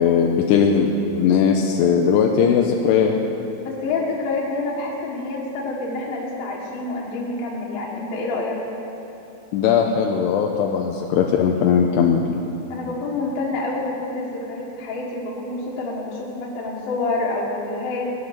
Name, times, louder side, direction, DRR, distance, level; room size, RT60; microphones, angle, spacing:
voice 1, 0.0-3.2 9.5-12.2, left 7 dB, 80° left, 1 dB, 2.7 m, -18 dB
voice 2, 3.6-8.6 12.7-18.1, left 3 dB, 60° left, -5 dB, 3.2 m, -27 dB
19.5 x 10.5 x 6.6 m, 3.0 s
omnidirectional pair, 5.2 m